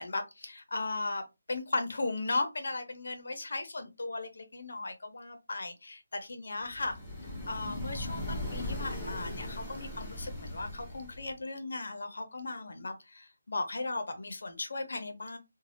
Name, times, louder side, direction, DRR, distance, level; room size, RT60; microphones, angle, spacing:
voice 1, 0.0-7.0 7.5-15.4, left 3 dB, 65° left, 0.7 m, -36 dB
sound 1, 6.7-11.4, left 1 dB, 5° left, 0.7 m, -39 dB
3.3 x 2.3 x 2.6 m
figure-of-eight pair, 170°, 0 cm